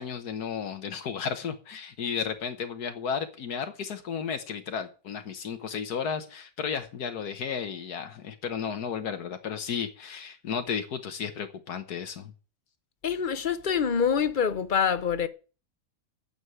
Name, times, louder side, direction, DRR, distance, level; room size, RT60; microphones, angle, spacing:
voice 1, 0.0-12.3, left 7 dB, 80° left, 1.7 m, -33 dB
voice 2, 13.0-15.3, left 7 dB, 40° left, 0.8 m, -25 dB
9.6 x 7.1 x 9.1 m
omnidirectional pair, 1.6 m